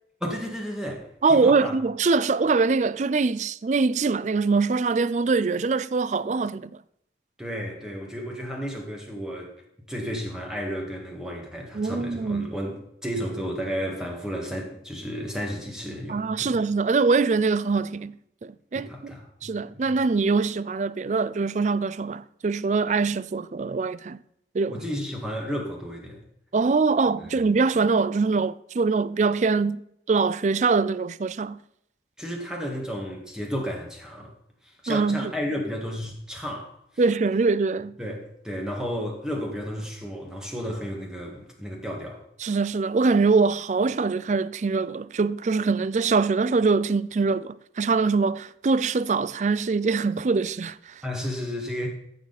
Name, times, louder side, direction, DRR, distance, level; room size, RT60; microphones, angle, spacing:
voice 1, 0.2-1.7 7.4-9.5 9.9-16.6 18.7-20.0 24.7-26.2 27.3-27.4 32.2-34.3 34.6-36.8 38.0-42.2 51.0-51.9, equal, 5° right, 1.8 m, -33 dB
voice 2, 1.2-6.7 11.7-12.5 16.1-18.2 18.4-19.1 19.4-24.2 24.5-24.8 26.5-31.6 34.9-35.3 37.0-38.0 42.4-51.0, right 4 dB, 40° right, 0.4 m, -23 dB
14.0 x 7.3 x 4.2 m
head